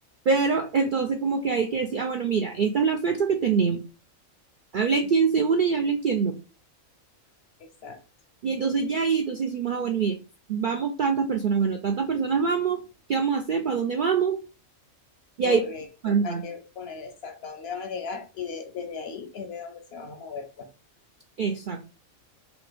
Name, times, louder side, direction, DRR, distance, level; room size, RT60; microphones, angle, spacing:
voice 1, 0.3-3.8 4.7-6.4 8.4-10.2 10.5-12.8 13.1-14.4 15.4-15.6 16.0-16.4 21.4-21.9, right 5 dB, 65° right, 4 dB, 0.5 m, -24 dB
voice 2, 7.6-8.0 15.4-20.7, left 6 dB, 60° left, 6 dB, 0.8 m, -37 dB
4.1 x 2.9 x 3.3 m, 0.33 s
omnidirectional pair, 1.4 m